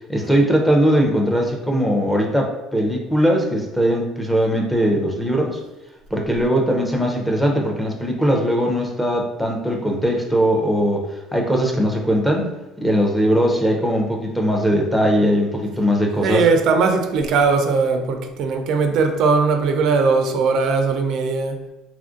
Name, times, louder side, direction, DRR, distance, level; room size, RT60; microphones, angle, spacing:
voice 1, 0.1-5.6 6.1-11.1 11.3-16.4, equal, 5° left, 0 dB, 0.5 m, -20 dB
voice 2, 16.2-21.6, right 4 dB, 65° right, 5 dB, 0.3 m, -19 dB
3.0 x 2.4 x 2.5 m, 1.0 s
cardioid pair, 105°, 0 cm